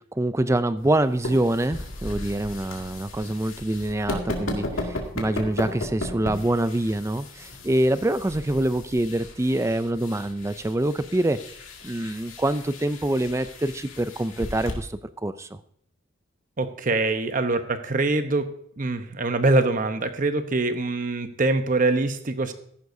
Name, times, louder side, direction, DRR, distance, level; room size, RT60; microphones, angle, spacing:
voice 1, 0.2-4.7 5.1-11.4 11.8-14.9 15.2-15.5, right 1 dB, 15° right, 13 dB, 0.4 m, -25 dB
sound 1, 0.8-14.7, left 1 dB, 85° left, 2.2 m, -36 dB
voice 2, 16.6-18.5 18.8-22.5, right 2 dB, 40° right, 8 dB, 0.9 m, -24 dB
14.5 x 11.0 x 2.7 m, 0.66 s
head